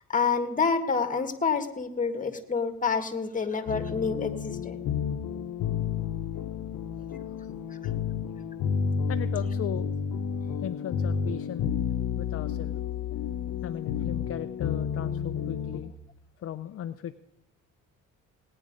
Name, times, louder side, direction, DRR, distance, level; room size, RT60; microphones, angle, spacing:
voice 1, 0.1-4.8, left 5 dB, 25° left, 8 dB, 1.7 m, -28 dB
sound 1, 3.7-15.8, left 7 dB, 85° left, 0.9 m, -31 dB
voice 2, 9.1-9.9 10.6-11.7 12.2-12.8 13.6-15.9 16.4-17.1, left 10 dB, 50° left, 10 dB, 0.6 m, -36 dB
18.0 x 9.8 x 5.2 m, 0.88 s
cardioid pair, 90°, 30 cm